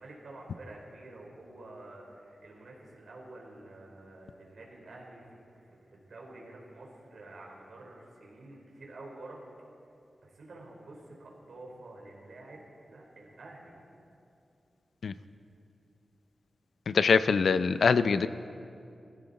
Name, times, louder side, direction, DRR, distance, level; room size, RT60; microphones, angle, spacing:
voice 1, 0.0-9.4 10.2-13.7, right 2 dB, 75° right, -2 dB, 3.7 m, -49 dB
voice 2, 16.9-18.3, left 5 dB, 80° left, 13 dB, 0.5 m, -23 dB
21.0 x 15.5 x 4.1 m, 2.6 s
wide cardioid pair, 135°, 0 cm